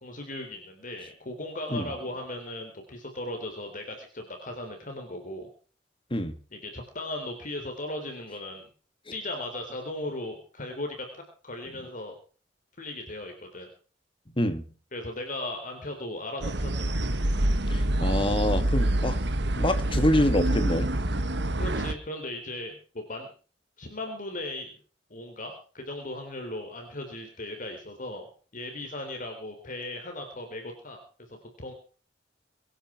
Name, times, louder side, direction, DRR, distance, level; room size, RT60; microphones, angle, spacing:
voice 1, 0.0-5.5 6.5-8.7 9.1-12.1 12.8-13.7 14.9-16.9 21.6-23.3 23.8-24.8 25.1-31.7, left 1 dB, 45° left, 4 dB, 3.7 m, -37 dB
sound 1, 16.4-21.9, right 1 dB, 70° right, 1.6 m, -26 dB
voice 2, 17.7-19.2 19.5-20.9, left 1 dB, 30° left, 9 dB, 2.2 m, -26 dB
24.5 x 10.5 x 4.6 m, 0.40 s
head